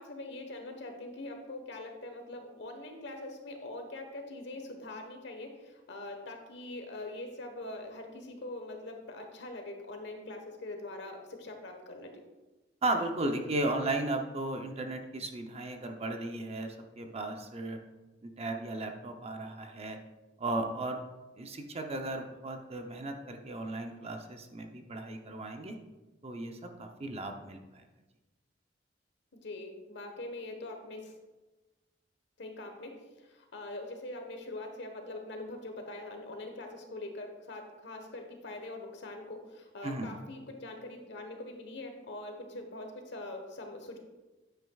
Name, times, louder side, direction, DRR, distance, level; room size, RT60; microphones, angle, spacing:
voice 1, 0.0-12.2 29.3-31.1 32.4-44.0, left 2 dB, 65° left, 4 dB, 1.2 m, -43 dB
voice 2, 12.8-17.8 18.2-20.0 20.4-21.0 21.4-25.8 26.2-27.8 39.8-40.1, right 2 dB, 35° right, 4 dB, 0.7 m, -35 dB
9.4 x 8.5 x 2.4 m, 1.2 s
head